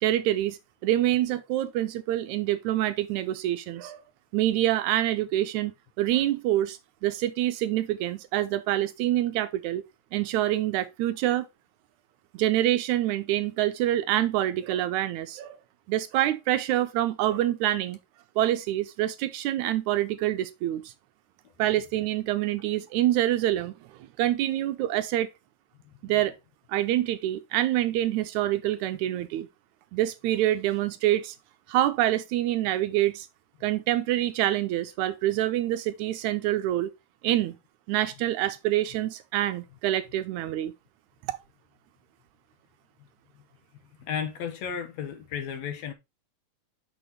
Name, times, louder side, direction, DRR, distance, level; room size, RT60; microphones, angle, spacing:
voice 1, 0.0-4.0 4.3-9.8 10.1-11.5 12.3-15.6 15.9-18.0 18.4-20.9 21.6-23.7 24.0-25.3 26.0-26.3 26.7-29.5 29.9-31.4 31.7-33.3 33.6-36.9 37.2-37.6 37.9-40.7 41.3-41.4, right 13 dB, 80° right, 1.8 m, -26 dB
voice 2, 44.0-45.9, left 7 dB, 70° left, 1.9 m, -34 dB
6.2 x 4.9 x 4.1 m
omnidirectional pair, 3.6 m